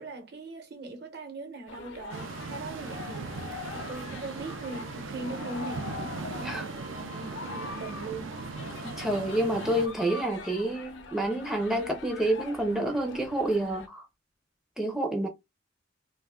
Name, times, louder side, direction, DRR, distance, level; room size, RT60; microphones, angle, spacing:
voice 1, 0.0-6.1 6.5-8.4, right 3 dB, 55° right, 0.9 m, -40 dB
sound 1, 1.7-13.9, left 4 dB, 65° left, 0.5 m, -43 dB
sound 2, 2.1-9.9, right 4 dB, 80° right, 0.4 m, -39 dB
voice 2, 9.0-14.1 14.8-15.3, right 1 dB, 5° right, 0.4 m, -28 dB
2.5 x 2.2 x 3.4 m
head